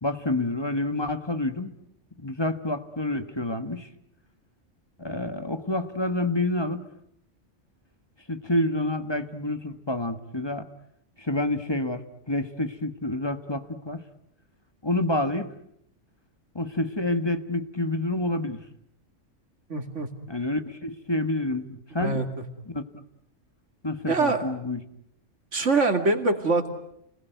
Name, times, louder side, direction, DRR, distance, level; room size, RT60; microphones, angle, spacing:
voice 1, 0.0-1.7 2.2-3.9 5.0-6.9 8.3-10.7 11.2-12.0 12.3-14.0 14.8-15.5 16.5-18.6 20.3-22.2 22.7-22.8 23.8-24.8, left 2 dB, 20° left, 9 dB, 1.4 m, -28 dB
voice 2, 19.7-20.1 22.0-22.3 24.1-24.5 25.5-26.7, right 3 dB, 70° right, 6 dB, 2.8 m, -23 dB
29.5 x 20.5 x 9.3 m, 0.76 s
omnidirectional pair, 1.3 m